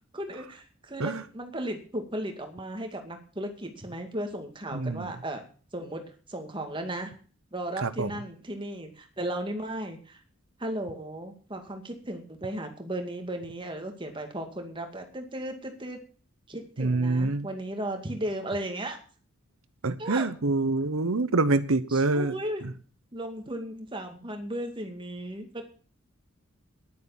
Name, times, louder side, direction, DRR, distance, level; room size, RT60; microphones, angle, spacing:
voice 1, 0.1-5.4 5.7-6.0 6.3-7.1 7.5-10.2 10.6-16.0 16.5-19.0 20.0-20.3 21.9-22.7 23.1-25.6, right 1 dB, 25° right, 5 dB, 2.2 m, -35 dB
voice 2, 4.7-5.1 7.8-8.1 16.8-17.5 19.8-22.3, right 3 dB, 85° right, 13 dB, 0.9 m, -26 dB
11.0 x 9.5 x 7.1 m, 0.41 s
head